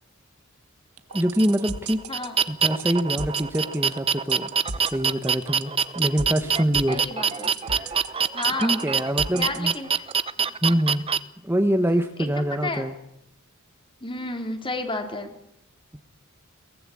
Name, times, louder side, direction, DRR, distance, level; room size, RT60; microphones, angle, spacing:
sound 1, 1.0-10.1, right 4 dB, 85° right, 1.6 m, -35 dB
voice 1, 1.1-2.0 2.5-4.5 4.8-7.0 7.7-8.0 8.6-9.7 10.6-11.0 11.4-12.9, equal, 10° right, 7 dB, 1.1 m, -25 dB
sound 2, 1.1-11.2, right 6 dB, 25° right, 0.8 m, -25 dB
voice 2, 6.9-7.5 8.3-8.8 9.3-10.0 10.4-10.7 12.2-12.8 14.0-15.3, left 2 dB, 25° left, 6 dB, 3.3 m, -32 dB
23.0 x 18.5 x 8.5 m, 0.78 s
head